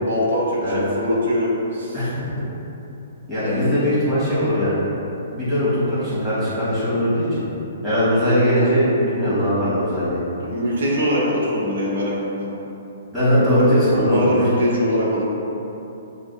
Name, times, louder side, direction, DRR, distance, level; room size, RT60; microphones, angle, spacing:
voice 1, 0.0-1.9 3.4-3.7 10.4-12.5 13.9-15.2, equal, 75° right, -5 dB, 1.0 m, -22 dB
voice 2, 1.9-2.3 3.3-4.8 5.3-7.4 7.8-10.2 13.1-14.5, equal, 5° right, -14 dB, 1.3 m, -20 dB
6.5 x 2.5 x 2.2 m, 2.9 s
hypercardioid pair, 170°, 0 cm